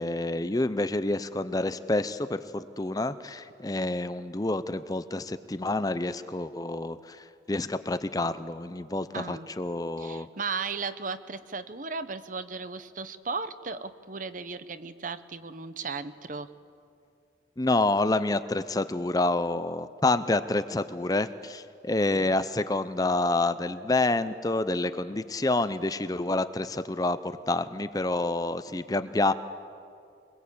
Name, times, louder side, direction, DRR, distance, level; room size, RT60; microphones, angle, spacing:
voice 1, 0.0-10.3 17.6-29.3, left 2 dB, 20° left, 12 dB, 0.5 m, -28 dB
voice 2, 9.1-9.5 10.0-16.5, right 4 dB, 45° right, 12 dB, 0.8 m, -36 dB
24.5 x 21.0 x 8.6 m, 2.4 s
head